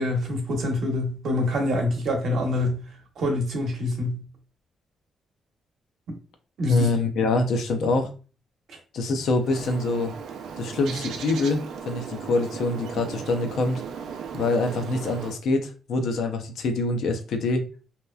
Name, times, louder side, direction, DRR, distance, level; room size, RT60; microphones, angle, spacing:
voice 1, 0.0-2.8 3.2-4.2 6.6-6.9 8.7-8.8, left 1 dB, 70° right, 0.8 m, -25 dB
voice 2, 6.7-8.1 8.9-10.1 10.6-11.6 11.9-13.8 14.3-17.6, left 2 dB, 80° left, 0.5 m, -25 dB
Bird, 9.4-15.4, right 6 dB, 90° right, 0.4 m, -37 dB
2.8 x 2.3 x 2.2 m
cardioid pair, 110°, 0 cm